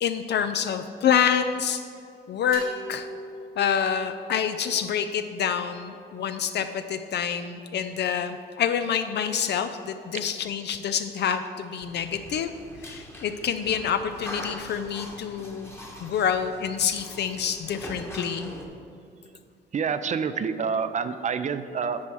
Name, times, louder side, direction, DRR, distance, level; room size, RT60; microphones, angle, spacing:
voice 1, 0.0-1.8 2.3-3.1 3.6-12.5 12.8-15.7 16.0-18.5, left 8 dB, 60° left, 9 dB, 0.4 m, -27 dB
sound 1, 2.5-6.2, right 1 dB, 85° right, 1.5 m, -43 dB
sound 2, 11.8-18.7, left 1 dB, 10° left, 1.1 m, -42 dB
voice 2, 19.7-22.0, right 6 dB, 35° right, 11 dB, 0.4 m, -27 dB
8.4 x 4.4 x 6.2 m, 2.4 s
cardioid pair, 90°, 20 cm